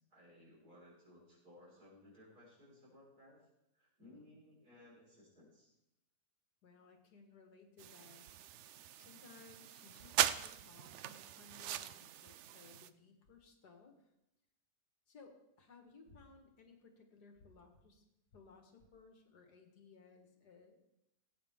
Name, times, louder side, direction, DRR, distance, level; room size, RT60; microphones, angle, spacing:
voice 1, 0.1-3.4 3.7-5.7, left 1 dB, 65° right, -6 dB, 5.7 m, -60 dB
voice 2, 4.0-4.4 6.6-8.3 9.0-14.1 15.1-18.0 18.3-20.8, left 4 dB, 75° left, 4 dB, 2.1 m, -61 dB
sound 1, 7.8-12.9, right 11 dB, 80° right, 0.6 m, -40 dB
18.0 x 8.6 x 3.7 m, 0.86 s
omnidirectional pair, 1.8 m